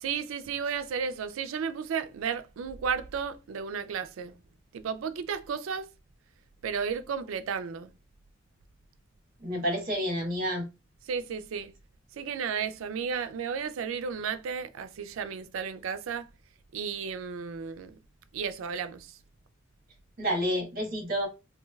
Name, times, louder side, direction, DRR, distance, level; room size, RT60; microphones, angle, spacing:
voice 1, 0.0-4.3 4.7-5.9 6.6-7.9 11.1-11.7 12.1-16.3 16.7-18.0 18.3-19.2, right 6 dB, 90° right, 0.4 m, -33 dB
voice 2, 9.4-10.7 20.2-21.3, equal, 45° right, 1.1 m, -29 dB
3.1 x 2.6 x 2.2 m
head